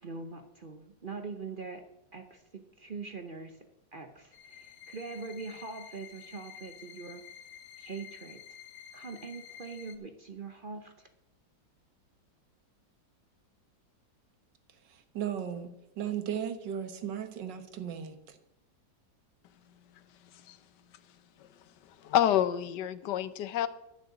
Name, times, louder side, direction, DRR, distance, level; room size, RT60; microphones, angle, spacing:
voice 1, 0.0-1.8 2.1-3.6 3.9-7.2 7.8-8.4 8.9-11.1, right 4 dB, 50° right, 7 dB, 0.6 m, -42 dB
sound 1, 4.3-10.0, left 9 dB, 90° left, 1.6 m, -50 dB
voice 2, 14.8-18.4, right 9 dB, 75° right, 9 dB, 1.8 m, -36 dB
voice 3, 22.0-23.7, left 11 dB, 70° left, 14 dB, 1.3 m, -27 dB
11.0 x 6.2 x 8.1 m, 0.87 s
omnidirectional pair, 2.0 m